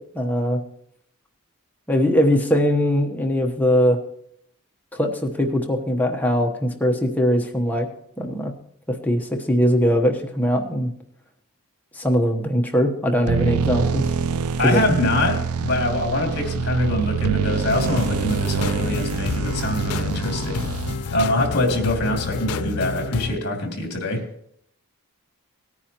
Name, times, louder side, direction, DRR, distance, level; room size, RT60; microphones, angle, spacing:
voice 1, 0.1-0.6 1.9-4.0 4.9-7.9 8.2-8.5 8.9-10.9 11.9-14.0 14.6-15.0, equal, 5° left, 2 dB, 1.0 m, -21 dB
sound 1, 13.2-21.2, right 6 dB, 80° right, 0.4 m, -26 dB
voice 2, 14.6-20.7 21.1-24.2, left 1 dB, 50° left, 2 dB, 2.6 m, -24 dB
sound 2, 17.7-23.3, left 4 dB, 85° left, 0.5 m, -29 dB
18.5 x 9.7 x 2.9 m, 0.69 s
head